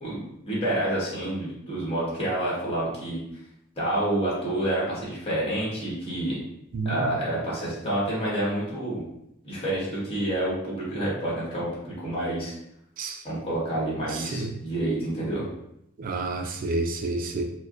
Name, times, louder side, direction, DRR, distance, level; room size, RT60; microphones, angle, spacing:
voice 1, 0.0-3.2 3.8-6.4 6.8-9.0 9.4-12.5 13.2-15.4, right 1 dB, 30° left, -7 dB, 1.3 m, -28 dB
voice 2, 16.0-17.4, right 3 dB, 45° right, 4 dB, 0.4 m, -29 dB
4.4 x 2.1 x 2.5 m, 0.80 s
head